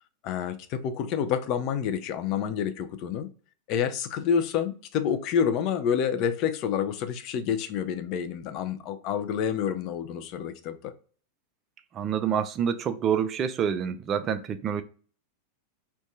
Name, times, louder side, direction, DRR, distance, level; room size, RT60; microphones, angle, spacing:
voice 1, 0.2-3.3 3.7-10.9, left 8 dB, 40° left, 0.4 m, -28 dB
voice 2, 11.9-14.8, right 8 dB, 30° right, 0.3 m, -27 dB
2.6 x 2.2 x 3.9 m
figure-of-eight pair, 90°, 0 cm